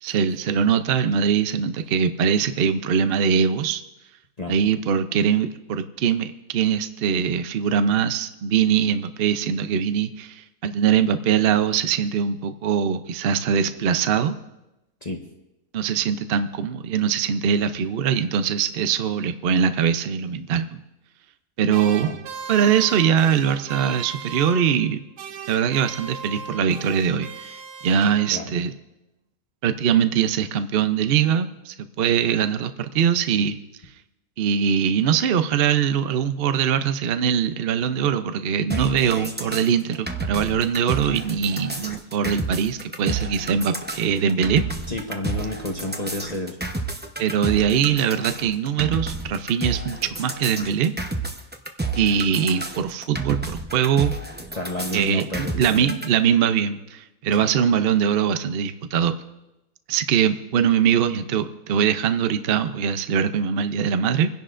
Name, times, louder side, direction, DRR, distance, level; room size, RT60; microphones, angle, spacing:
voice 1, 0.0-3.8 4.5-14.4 15.7-20.8 21.6-22.1 22.5-25.0 25.5-28.7 29.6-33.6 34.4-44.6 47.2-50.9 52.0-54.1 54.9-59.2 59.9-64.3, right 7 dB, 55° right, 9 dB, 0.6 m, -22 dB
sound 1, 21.7-24.9 25.2-28.6, right 5 dB, 80° right, 1.3 m, -37 dB
sound 2, 38.7-56.1, right 3 dB, 15° right, 0.4 m, -31 dB
voice 2, 44.9-46.6 54.5-55.9 57.3-57.5, left 1 dB, 30° left, 1 dB, 0.9 m, -30 dB
26.0 x 10.5 x 2.5 m, 0.95 s
omnidirectional pair, 1.7 m